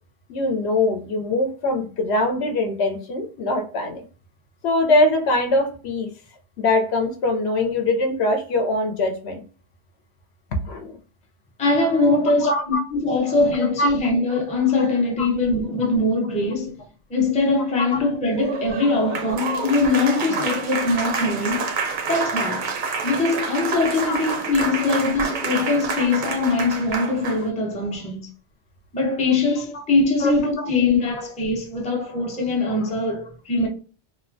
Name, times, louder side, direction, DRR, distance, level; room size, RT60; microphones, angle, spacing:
voice 1, 0.3-4.0 4.6-6.1 6.6-9.4 10.6-11.0 12.4-12.8 13.8-13.9 15.2-15.3 17.9-18.0 19.3-19.4 20.1-20.2 24.1-24.2 24.8-24.9 29.7-29.8 30.2-30.3 30.6-30.7, left 2 dB, 70° left, 0.8 m, -22 dB
voice 2, 11.6-16.8 17.1-21.7 22.1-22.7 23.0-28.3 28.9-33.7, left 3 dB, 10° left, 0.4 m, -22 dB
Applause, 18.3-27.5, right 5 dB, 55° right, 0.5 m, -28 dB
2.9 x 2.1 x 2.5 m
omnidirectional pair, 1.2 m